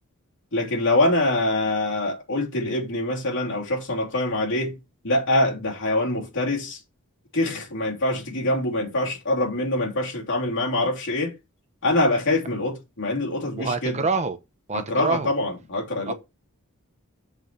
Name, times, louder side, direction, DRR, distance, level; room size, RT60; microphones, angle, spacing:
voice 1, 0.5-6.8 7.3-11.3 11.8-14.0 14.7-16.1, left 1 dB, 55° left, 3.3 m, -24 dB
voice 2, 13.6-14.4 14.7-15.3 16.1-16.2, right 4 dB, 30° right, 0.9 m, -26 dB
7.7 x 4.7 x 6.8 m
head